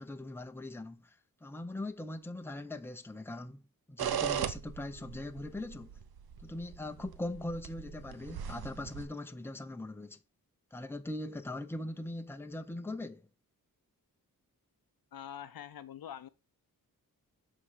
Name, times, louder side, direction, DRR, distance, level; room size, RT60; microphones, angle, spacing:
voice 1, 0.0-3.6 3.9-5.9 6.4-10.2 10.7-13.3, left 2 dB, 5° left, 0.7 m, -41 dB
sound 1, 4.0-9.1, right 9 dB, 90° right, 0.7 m, -38 dB
voice 2, 15.1-16.3, left 9 dB, 75° left, 0.6 m, -45 dB
7.2 x 3.8 x 4.8 m
wide cardioid pair, 90°, 36 cm